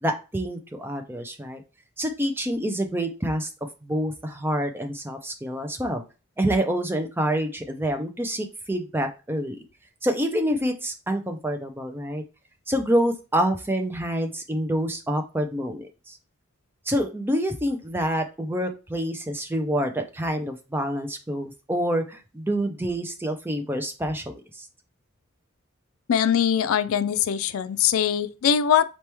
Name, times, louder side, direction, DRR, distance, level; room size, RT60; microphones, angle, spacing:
voice 1, 0.0-1.6 2.0-3.5 3.8-6.0 6.4-9.6 10.0-12.2 12.7-16.2 16.9-24.7, equal, 10° right, 0.5 m, -27 dB
voice 2, 26.1-28.8, left 8 dB, 85° left, 0.4 m, -22 dB
4.2 x 3.0 x 3.4 m
head